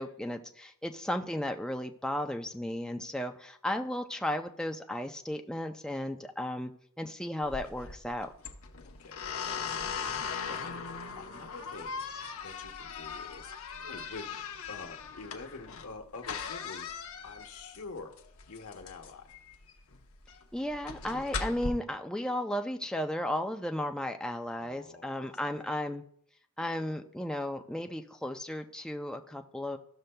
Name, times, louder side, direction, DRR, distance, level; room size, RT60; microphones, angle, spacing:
voice 1, 0.0-6.7 7.0-8.3 20.5-26.0 26.6-29.8, left 1 dB, 5° left, 4 dB, 0.4 m, -34 dB
sound 1, 7.4-21.7, left 5 dB, 70° left, 0.8 m, -39 dB
voice 2, 8.8-19.4 24.6-25.7, left 4 dB, 90° left, 4 dB, 1.1 m, -47 dB
14.5 x 6.5 x 2.2 m, 0.64 s
head